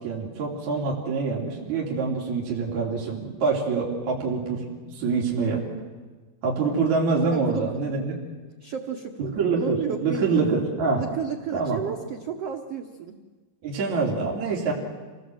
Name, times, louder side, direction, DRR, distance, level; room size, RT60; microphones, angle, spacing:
voice 1, 0.0-4.7 4.9-5.6 6.4-8.1 9.2-11.0 11.5-11.8 13.6-14.7, right 4 dB, 50° right, -4 dB, 4.4 m, -25 dB
voice 2, 7.3-7.8 8.6-10.6 11.0-13.2, right 7 dB, 75° right, 5 dB, 1.4 m, -32 dB
26.5 x 19.0 x 7.8 m, 1.3 s
omnidirectional pair, 4.4 m